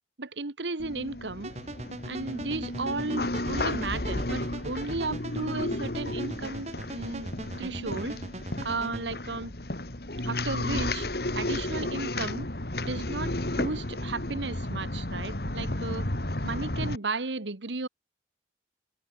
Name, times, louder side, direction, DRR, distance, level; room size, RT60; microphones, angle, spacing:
voice 1, 0.2-1.5 2.0-7.3 7.6-8.2 8.6-9.5 10.2-11.1 11.3-12.5 12.8-16.1 16.4-17.9, right 3 dB, 90° right, 1.5 m, -34 dB
sound 1, 0.8-17.0, left 1 dB, 60° left, 2.4 m, -33 dB
sound 2, 1.4-9.1, right 1 dB, 40° right, 1.7 m, -40 dB
open air
head